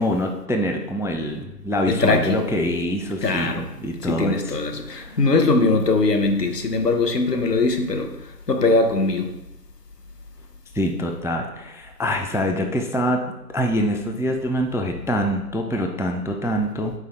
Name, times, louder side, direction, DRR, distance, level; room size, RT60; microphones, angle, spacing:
voice 1, 0.0-4.6 4.9-5.2 10.7-13.3 13.5-16.9, equal, 5° right, 0.3 m, -25 dB
voice 2, 1.9-2.4 3.2-3.7 4.0-9.3, left 3 dB, 75° left, 0.7 m, -21 dB
4.4 x 3.4 x 3.3 m
figure-of-eight pair, 175°, 49 cm